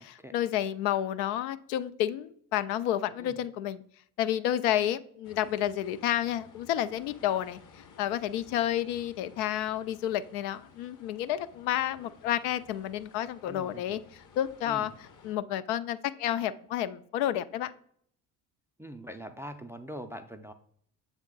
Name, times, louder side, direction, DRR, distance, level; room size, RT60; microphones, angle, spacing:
voice 1, 0.0-3.8 4.2-7.6 8.0-14.0 14.4-14.9 15.2-17.7, left 11 dB, 70° left, 14 dB, 0.5 m, -30 dB
sound 1, 5.2-15.4, left 5 dB, 40° left, 1.0 m, -56 dB
voice 2, 13.5-14.0 14.6-15.0 18.8-20.5, equal, 5° right, 8 dB, 0.3 m, -43 dB
7.2 x 3.6 x 3.8 m, 0.63 s
hypercardioid pair, 55°, 46 cm